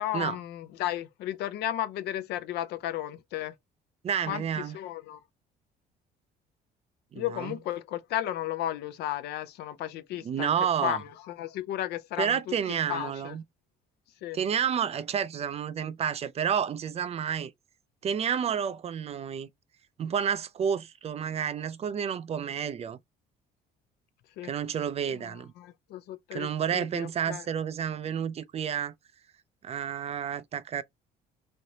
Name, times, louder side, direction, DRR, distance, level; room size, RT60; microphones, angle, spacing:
voice 1, 0.0-3.5 4.3-5.2 7.1-10.5 10.8-13.4 14.2-14.4 24.4-24.5 25.2-27.4, left 12 dB, 75° left, 0.5 m, -34 dB
voice 2, 4.0-4.8 7.1-7.5 10.2-11.0 12.2-13.4 14.3-17.5 18.0-19.5 20.0-23.0 24.4-25.5 26.3-28.9 29.6-30.8, right 8 dB, 40° right, 0.4 m, -30 dB
3.2 x 2.8 x 2.7 m
cardioid pair, 110°, 17 cm